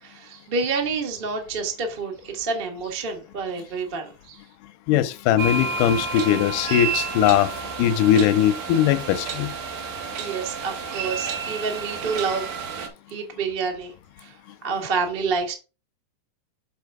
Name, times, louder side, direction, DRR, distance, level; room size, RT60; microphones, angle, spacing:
voice 1, 0.0-4.4 10.1-12.5 13.1-13.9 14.2-14.3 14.6-15.5, right 4 dB, 55° right, 0.6 m, -28 dB
voice 2, 4.9-7.5 7.8-9.5, left 10 dB, 80° left, 2.2 m, -20 dB
sound 1, 5.4-12.9, right 5 dB, 90° right, 2.9 m, -30 dB
7.0 x 4.4 x 4.7 m
omnidirectional pair, 3.8 m